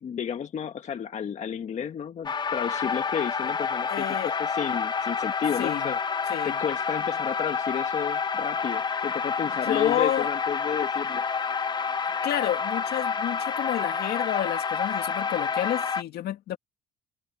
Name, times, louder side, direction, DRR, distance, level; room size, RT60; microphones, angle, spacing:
voice 1, 0.0-4.1 4.4-11.2, left 8 dB, 45° left, 1.4 m, -32 dB
sound 1, 2.2-16.0, left 5 dB, 25° left, 1.0 m, -29 dB
voice 2, 3.9-4.3 5.6-5.9 6.3-6.6 9.7-10.3 12.2-16.6, left 12 dB, 70° left, 2.1 m, -30 dB
cardioid pair, 110°, 17 cm